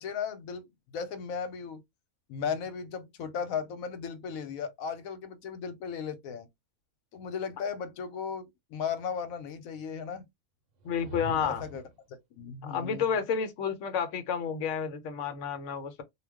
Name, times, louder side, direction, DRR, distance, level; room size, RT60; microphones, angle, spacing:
voice 1, 0.0-1.8 2.3-6.5 7.1-10.3 11.0-11.1 11.4-11.8 12.3-13.0, left 6 dB, 85° left, 1.1 m, -36 dB
voice 2, 10.8-11.6 12.6-16.0, left 7 dB, 65° left, 0.9 m, -30 dB
sound 1, 10.8-12.0, right 2 dB, 70° right, 1.0 m, -43 dB
2.4 x 2.2 x 3.4 m
omnidirectional pair, 1.4 m